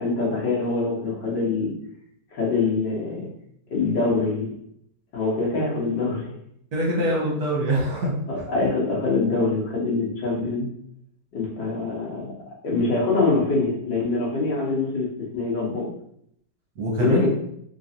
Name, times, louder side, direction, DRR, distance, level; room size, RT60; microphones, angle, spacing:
voice 1, 0.0-1.7 2.3-3.3 3.7-4.5 5.1-6.3 8.0-10.7 11.3-12.3 12.6-15.9 17.0-17.3, left 3 dB, 80° left, -4 dB, 1.9 m, -24 dB
voice 2, 6.7-8.1 16.8-17.3, right 1 dB, 65° right, -3 dB, 1.6 m, -24 dB
3.9 x 3.2 x 2.7 m, 0.70 s
omnidirectional pair, 1.9 m